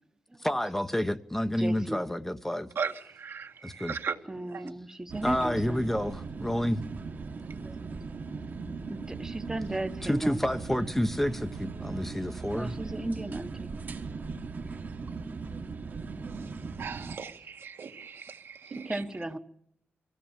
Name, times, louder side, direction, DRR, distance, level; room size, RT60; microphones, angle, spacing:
voice 1, 0.4-2.7 3.6-3.9 5.2-6.8 10.0-12.7, left 1 dB, 5° left, 0.8 m, -29 dB
voice 2, 1.6-2.0 4.3-5.8 7.4-8.0 8.9-10.4 12.5-13.7 14.5-14.8 18.8-19.4, right 2 dB, 15° right, 1.0 m, -36 dB
voice 3, 2.8-4.2 4.5-4.6 16.8-19.0, right 6 dB, 70° right, 1.8 m, -37 dB
sound 1, 5.1-17.2, right 4 dB, 50° right, 1.4 m, -39 dB
24.5 x 16.0 x 7.3 m
wide cardioid pair, 145°, 4 cm